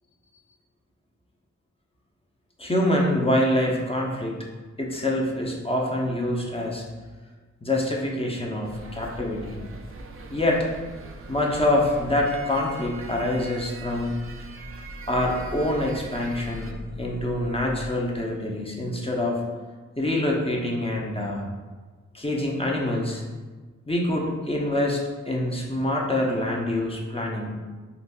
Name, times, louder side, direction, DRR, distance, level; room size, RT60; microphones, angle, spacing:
voice 1, 2.6-4.4 4.8-6.8 7.6-9.6 10.3-10.7 11.3-14.2 15.1-19.4 20.0-21.4 22.1-23.2 23.9-27.5, left 1 dB, 20° left, -2 dB, 0.7 m, -25 dB
sound 1, 8.6-16.7, right 3 dB, 45° right, 0.4 m, -41 dB
sound 2, 14.5-17.9, left 1 dB, 60° left, 0.7 m, -41 dB
3.9 x 2.5 x 2.3 m, 1.3 s
cardioid pair, 40°, 31 cm